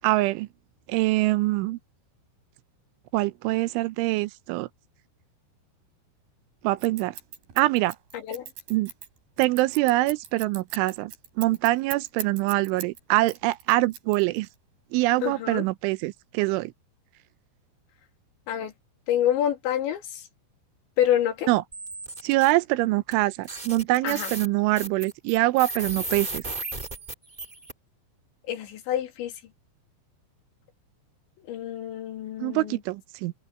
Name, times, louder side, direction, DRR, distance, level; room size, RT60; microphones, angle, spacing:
voice 1, 0.0-0.5 0.9-1.8 3.1-4.7 6.6-7.1 7.6-8.0 8.7-8.9 9.4-11.1 11.4-14.5 14.9-16.7 21.5-21.6 22.2-26.4 32.4-33.3, right 19 dB, 90° right, 3.2 m, -24 dB
Scissors, 6.8-13.0 13.3-14.5, right 9 dB, 60° right, 4.7 m, -39 dB
voice 2, 15.2-15.7 18.5-18.7 19.1-20.2 21.0-21.5 24.0-24.3 28.5-29.3 31.4-32.8, left 10 dB, 75° left, 4.7 m, -27 dB
sound 1, 21.7-22.5 23.1-23.2 23.4-27.7, right 2 dB, 30° right, 0.7 m, -35 dB
open air
omnidirectional pair, 5.4 m